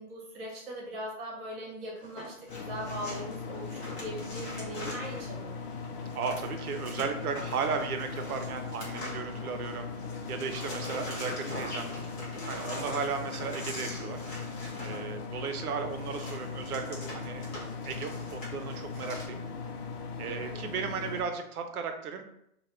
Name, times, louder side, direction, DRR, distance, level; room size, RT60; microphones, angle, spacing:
voice 1, 0.0-5.7 10.7-11.1 20.3-20.5, right 1 dB, 40° right, -2 dB, 1.3 m, -40 dB
sound 1, 2.0-9.7 10.0-19.3, left 1 dB, 25° left, 0.7 m, -43 dB
sound 2, 2.5-21.2, left 5 dB, 85° left, 0.7 m, -39 dB
voice 2, 6.1-9.9 10.3-11.9 12.5-14.2 14.8-17.5 17.8-19.4 20.2-22.2, right 6 dB, 80° right, 6 dB, 0.6 m, -35 dB
2.9 x 2.3 x 3.2 m, 0.76 s
hypercardioid pair, 140°, 45 cm